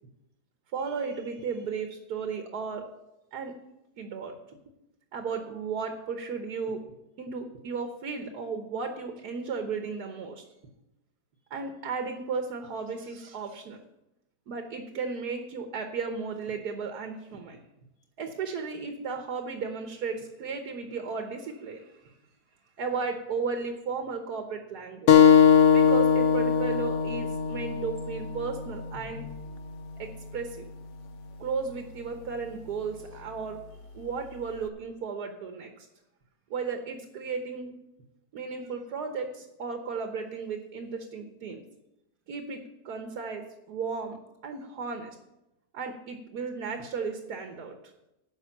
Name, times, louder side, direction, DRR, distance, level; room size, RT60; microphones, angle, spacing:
voice 1, 0.7-2.8 3.3-3.5 4.0-4.3 5.1-6.8 7.2-10.4 11.5-13.8 14.5-17.6 18.2-22.0 22.8-25.1 25.7-29.3 30.0-30.7 31.4-33.6 33.9-35.9 36.5-37.7 38.3-41.6 42.3-44.2 44.4-45.2 45.7-47.8, right 5 dB, 75° right, 5 dB, 1.6 m, -34 dB
sound 1, 25.1-30.2, left 7 dB, 60° left, 0.8 m, -22 dB
10.5 x 6.4 x 7.1 m, 0.91 s
omnidirectional pair, 1.7 m